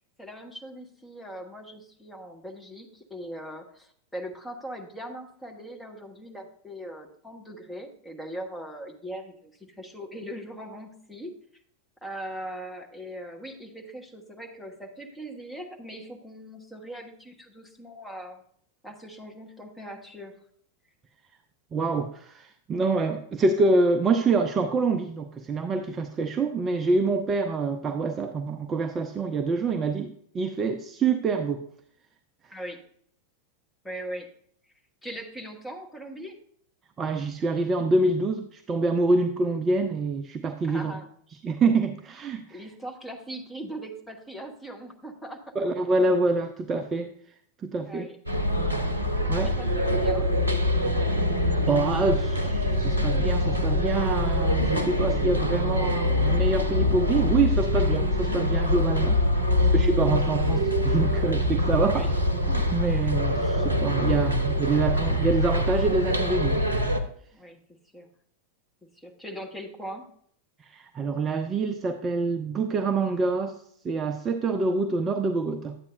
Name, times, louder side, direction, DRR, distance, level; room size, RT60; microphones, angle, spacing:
voice 1, 0.2-11.3 12.0-18.4 18.8-20.3 32.5-32.8 33.8-34.3 35.0-36.4 40.6-41.1 42.5-45.5 47.9-48.2 49.4-50.3 61.9-62.1 67.3-67.6 67.9-68.1 68.9-70.1, right 1 dB, 5° left, 1 dB, 1.2 m, -40 dB
voice 2, 21.7-31.7 37.0-40.9 41.4-42.6 45.6-47.1 47.6-48.1 49.3-49.5 51.7-59.5 59.7-62.2 62.5-66.6 70.6-73.6 73.8-75.8, right 3 dB, 20° right, 7 dB, 0.5 m, -26 dB
sound 1, 48.3-67.0, left 1 dB, 80° right, 0.7 m, -24 dB
10.5 x 8.2 x 2.6 m, 0.63 s
figure-of-eight pair, 90°, 0 cm